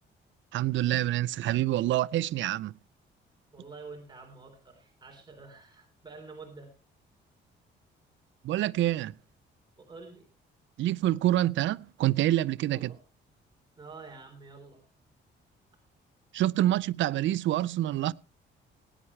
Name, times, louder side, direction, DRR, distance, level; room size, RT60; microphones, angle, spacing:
voice 1, 0.5-2.7 8.4-9.1 10.8-12.9 16.3-18.1, right 14 dB, 70° right, 0.5 m, -27 dB
voice 2, 3.5-6.7 9.8-10.3 12.7-13.0 13.8-14.8, right 4 dB, 20° right, 3.9 m, -48 dB
18.5 x 9.8 x 3.2 m
cardioid pair, 90°, 20 cm